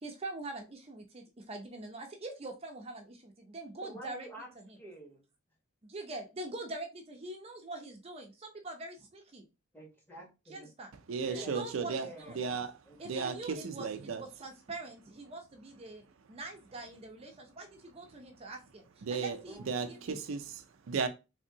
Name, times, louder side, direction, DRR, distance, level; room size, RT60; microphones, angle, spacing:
voice 1, 0.0-4.8 5.8-9.5 10.5-10.9 11.3-12.4 13.0-16.0 16.3-20.2, right 2 dB, 30° right, 0.6 m, -44 dB
voice 2, 3.8-4.5 4.8-5.3 9.7-10.7 11.2-11.6 12.0-12.4 12.9-13.7 19.5-20.0, right 1 dB, 10° left, 1.0 m, -49 dB
voice 3, 11.1-12.1 12.4-12.7 13.0-14.2 19.0-19.4 19.7-21.1, right 5 dB, 75° right, 0.4 m, -35 dB
3.5 x 2.7 x 2.7 m
head